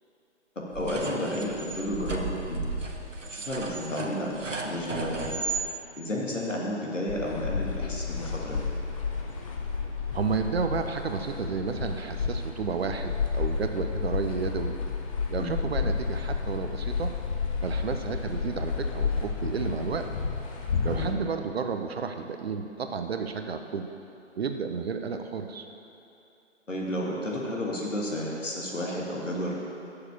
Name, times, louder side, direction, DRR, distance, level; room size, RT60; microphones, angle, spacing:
voice 1, 0.6-2.6 3.3-5.4 6.0-8.7 15.4-15.7 20.9-21.3 26.7-29.5, left 1 dB, 90° left, -2 dB, 2.0 m, -32 dB
sound 1, 0.7-5.6, right 3 dB, 90° right, 1.1 m, -34 dB
sound 2, 7.1-21.1, left 5 dB, 30° left, 0.7 m, -31 dB
voice 2, 10.1-14.8 15.3-17.1 17.6-20.1 20.8-23.9 24.4-25.7, right 5 dB, 55° right, 7 dB, 0.6 m, -32 dB
7.1 x 6.6 x 6.9 m, 2.8 s
figure-of-eight pair, 140°, 36 cm